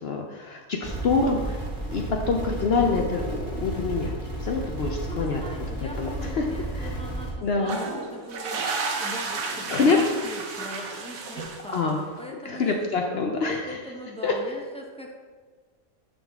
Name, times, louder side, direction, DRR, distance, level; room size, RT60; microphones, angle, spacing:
voice 1, 0.0-1.6 1.9-5.4 6.0-6.1 6.3-6.5 6.7-6.9 7.4-7.8 9.7-10.0 11.7-12.0 12.4-13.8 14.2-14.3, left 4 dB, 60° left, 2 dB, 0.7 m, -26 dB
sound 1, 0.8-7.3, right 1 dB, 15° right, 1.6 m, -33 dB
voice 2, 5.0-12.8 13.4-15.1, equal, 5° left, -1 dB, 0.4 m, -40 dB
sound 2, 7.6-12.1, right 4 dB, 75° right, 1.2 m, -32 dB
11.0 x 3.8 x 3.5 m, 1.5 s
omnidirectional pair, 1.5 m